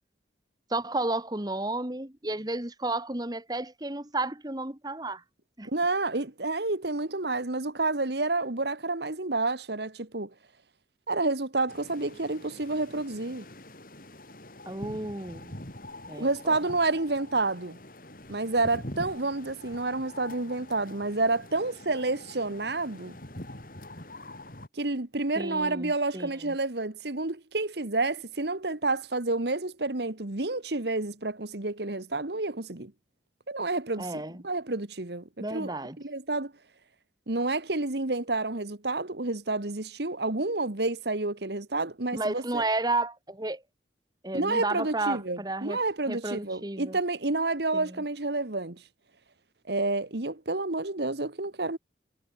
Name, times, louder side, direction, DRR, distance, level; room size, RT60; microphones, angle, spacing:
voice 1, 0.7-5.2 5.6-5.7 14.7-15.6 16.1-16.6 25.4-26.6 34.0-34.4 35.4-36.0 42.1-43.6 44.2-45.8 46.1-47.0 47.7-48.0, right 2 dB, 20° right, 1.6 m, -32 dB
voice 2, 5.6-10.3 11.1-13.5 16.2-17.8 18.3-23.2 24.8-32.9 33.5-34.1 34.4-35.2 35.5-36.5 37.3-42.6 44.3-48.8 49.7-51.8, right 2 dB, 65° right, 1.7 m, -29 dB
sound 1, 11.7-24.7, left 1 dB, 50° left, 4.2 m, -45 dB
head